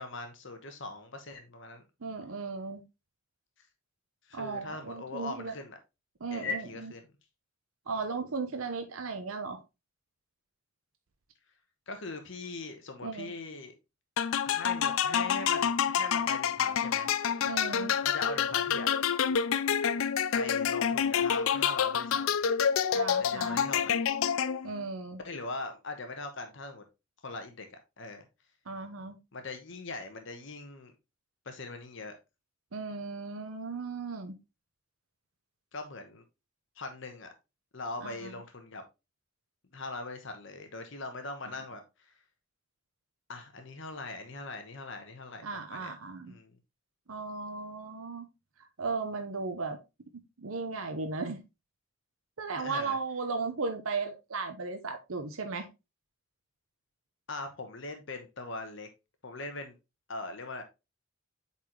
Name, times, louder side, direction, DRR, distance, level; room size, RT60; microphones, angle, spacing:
voice 1, 0.0-1.8 4.3-5.8 6.3-7.1 11.9-13.7 14.4-17.1 18.0-18.9 20.3-22.2 23.2-24.0 25.2-26.8 27.2-27.7 28.0-28.2 29.3-30.9 31.4-32.2 35.7-36.2 36.8-37.3 37.7-38.8 39.7-41.8 43.3-45.9 46.3-46.5 52.6-53.0 57.3-58.9 59.2-59.7 60.1-60.6, left 3 dB, 60° left, 1.1 m, -40 dB
voice 2, 2.0-2.8 4.3-5.5 6.2-6.6 7.9-9.6 13.0-13.3 17.4-17.9 22.9-23.6 24.6-25.2 28.7-29.2 32.7-34.4 38.0-38.3 45.4-46.3 47.1-48.3 48.8-49.8 50.4-51.4 52.4-55.7, right 4 dB, 80° right, 0.9 m, -36 dB
sound 1, 14.2-24.8, left 8 dB, 80° left, 0.4 m, -28 dB
8.3 x 4.3 x 3.0 m
head